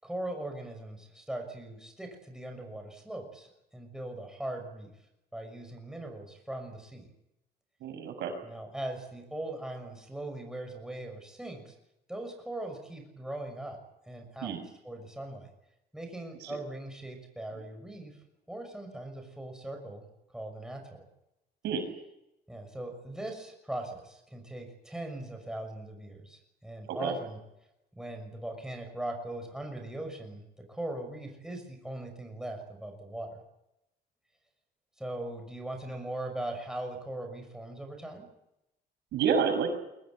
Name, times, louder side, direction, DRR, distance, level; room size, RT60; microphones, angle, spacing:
voice 1, 0.0-4.9 5.3-7.1 8.4-11.7 12.1-13.8 14.1-14.6 14.8-15.5 15.9-18.2 18.5-20.0 20.3-21.0 22.5-27.4 27.9-30.4 30.7-33.3 35.0-38.3, right 1 dB, 5° right, 3 dB, 6.2 m, -40 dB
voice 2, 7.8-8.3 14.4-14.6 16.4-16.6 21.6-21.8 26.9-27.2 39.1-39.7, right 6 dB, 90° right, 6 dB, 6.5 m, -29 dB
23.5 x 18.5 x 8.9 m, 0.87 s
cardioid pair, 140°, 17 cm